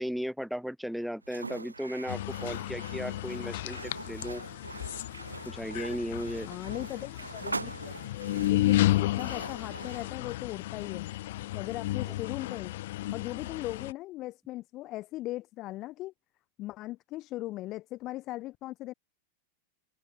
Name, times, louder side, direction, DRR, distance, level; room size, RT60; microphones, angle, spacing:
voice 1, 0.0-4.4 5.4-6.5, equal, ahead, 6.2 m, -36 dB
sound 1, 1.2-10.1, right 3 dB, 80° right, 6.3 m, -43 dB
sound 2, 2.1-13.9, left 16 dB, 55° left, 2.5 m, -32 dB
voice 2, 6.4-8.1 8.5-11.1 11.5-12.7 13.1-16.1 16.6-18.9, left 17 dB, 35° left, 2.0 m, -38 dB
figure-of-eight pair, 90°, 0 cm